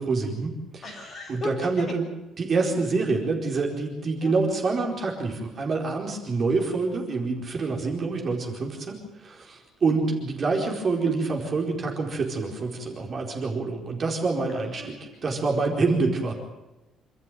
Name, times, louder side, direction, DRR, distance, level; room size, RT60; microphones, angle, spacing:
voice 1, 0.0-1.0 1.3-2.1 2.4-16.3, right 3 dB, 35° right, 1 dB, 4.5 m, -27 dB
voice 2, 0.8-1.9 4.2-4.3 14.5-15.4, left 1 dB, 25° left, 1 dB, 6.5 m, -37 dB
27.5 x 14.0 x 9.3 m, 1.0 s
cardioid pair, 150°, 0 cm